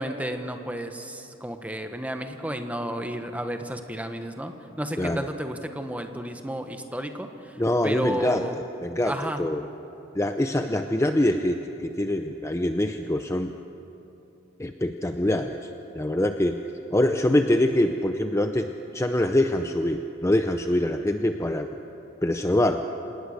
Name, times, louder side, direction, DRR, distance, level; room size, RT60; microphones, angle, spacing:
voice 1, 0.0-7.3 7.8-8.6 9.0-9.4, right 1 dB, 10° right, 6 dB, 1.2 m, -32 dB
voice 2, 7.6-9.7 10.1-13.5 14.6-15.7 15.9-16.6 16.9-21.7 22.2-22.8, left 1 dB, 15° left, 6 dB, 0.6 m, -24 dB
27.5 x 18.5 x 6.6 m, 3.0 s
head